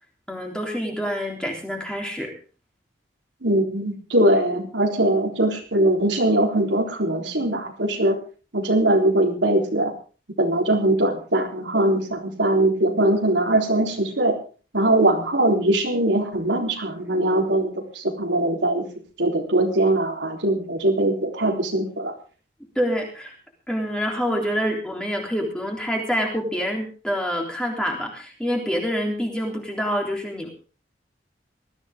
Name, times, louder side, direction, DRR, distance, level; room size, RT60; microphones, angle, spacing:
voice 1, 0.3-2.3 22.8-23.4 23.7-30.5, equal, 5° left, 0 dB, 3.6 m, -26 dB
voice 2, 3.4-8.2 8.5-9.9 10.4-14.4 14.7-18.8 19.2-22.1, right 1 dB, 85° right, 1 dB, 3.7 m, -21 dB
20.0 x 14.5 x 3.7 m, 0.37 s
head